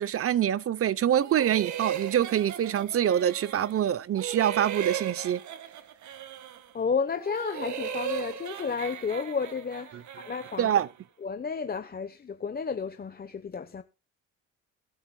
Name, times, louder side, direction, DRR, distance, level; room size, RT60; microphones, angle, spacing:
voice 1, 0.0-5.4 10.6-10.9, right 10 dB, 50° right, 0.7 m, -25 dB
sound 1, 1.2-3.8 4.1-6.7 7.1-10.9, right 10 dB, 70° right, 1.7 m, -37 dB
voice 2, 6.7-10.8 11.2-13.8, left 5 dB, 30° left, 0.9 m, -32 dB
22.5 x 8.4 x 2.2 m
cardioid pair, 90°, 30 cm